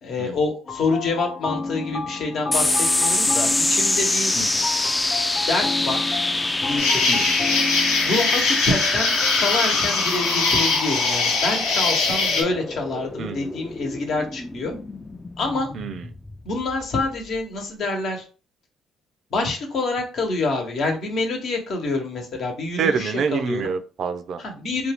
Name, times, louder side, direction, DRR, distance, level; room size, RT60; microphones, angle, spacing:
voice 1, 0.0-4.3 5.5-6.0 6.6-7.3 8.0-14.7 15.4-15.7 16.4-18.2 19.3-23.6 24.4-24.9, left 3 dB, 65° left, 1.0 m, -26 dB
sound 1, 0.7-10.5, left 3 dB, 40° left, 0.9 m, -33 dB
sound 2, 2.5-17.3, left 2 dB, 20° left, 0.3 m, -26 dB
Insect, 6.8-12.4, left 4 dB, 90° left, 0.7 m, -22 dB
voice 2, 13.2-13.5 15.7-16.0 22.8-24.4, right 5 dB, 60° right, 0.4 m, -26 dB
2.6 x 2.3 x 3.5 m
supercardioid pair, 70°, 0 cm